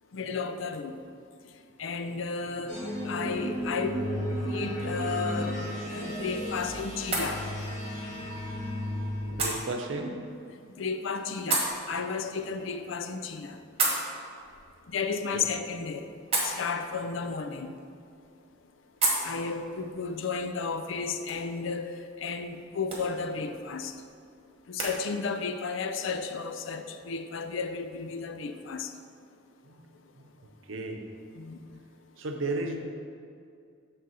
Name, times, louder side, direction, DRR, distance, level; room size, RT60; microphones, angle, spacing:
voice 1, 0.1-0.9 1.8-2.8 3.0-4.0 4.5-7.4 10.8-13.6 14.9-16.1 16.4-17.8 19.2-24.0 24.7-28.9 31.4-31.8, left 5 dB, 70° left, 8 dB, 0.5 m, -33 dB
sound 1, 2.7-9.5, equal, 35° left, 1.7 m, -33 dB
sound 2, 5.5-24.9, right 3 dB, 30° right, 1.3 m, -37 dB
voice 2, 9.3-10.2 15.3-15.4 29.6-29.8 30.2-30.3 30.6-31.0 32.2-32.8, right 2 dB, 75° right, 3 dB, 0.7 m, -34 dB
6.7 x 3.9 x 6.3 m, 2.4 s
head